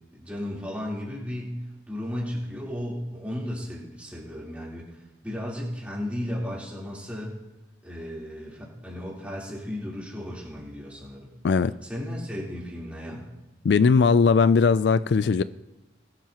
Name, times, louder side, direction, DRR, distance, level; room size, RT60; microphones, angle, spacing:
voice 1, 0.1-4.8 5.2-7.4 7.8-11.3 11.8-13.3, left 1 dB, 5° right, -6 dB, 3.8 m, -34 dB
voice 2, 13.6-15.4, left 5 dB, 70° left, 15 dB, 0.3 m, -19 dB
21.5 x 12.0 x 3.0 m, 1.0 s
head